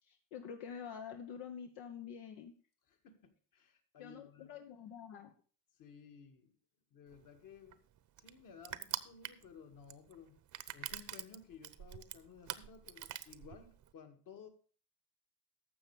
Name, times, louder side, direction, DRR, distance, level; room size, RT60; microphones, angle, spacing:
voice 1, 0.0-2.5 4.0-5.3, left 7 dB, 85° left, 4 dB, 1.2 m, -47 dB
voice 2, 3.0-4.5 5.8-6.5 6.9-7.8 8.2-10.4 10.7-14.5, left 6 dB, 60° left, 4 dB, 2.2 m, -56 dB
Crushing, 7.1-13.9, right 11 dB, 50° right, 0.8 m, -45 dB
12.5 x 7.2 x 4.9 m, 0.40 s
cardioid pair, 105°, 37 cm